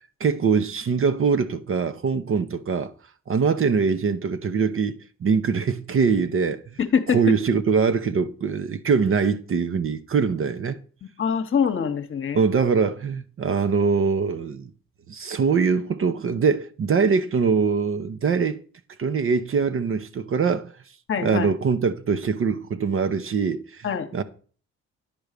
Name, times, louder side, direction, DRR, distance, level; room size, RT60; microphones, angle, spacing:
voice 1, 0.2-2.9 3.3-6.6 7.1-10.8 12.3-14.7 15.1-18.6 19.0-20.7 21.2-23.9 24.1-24.2, right 5 dB, 45° right, 0.8 m, -23 dB
voice 2, 6.8-7.3 11.2-12.4 21.1-21.5 23.8-24.1, left 7 dB, 45° left, 1.1 m, -24 dB
10.5 x 4.7 x 6.7 m
cardioid pair, 90°, 30 cm